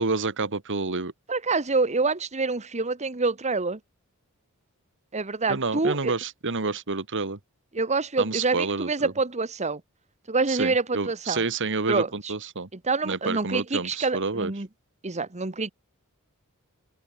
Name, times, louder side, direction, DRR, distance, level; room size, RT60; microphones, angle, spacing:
voice 1, 0.0-1.1 5.5-7.4 8.2-9.1 10.5-12.7 13.0-14.5, right 3 dB, 60° right, 1.7 m, -29 dB
voice 2, 1.3-3.8 5.1-6.1 7.7-9.8 10.3-11.4 11.9-12.3 12.8-14.7 15.0-15.7, right 3 dB, 30° right, 1.4 m, -26 dB
head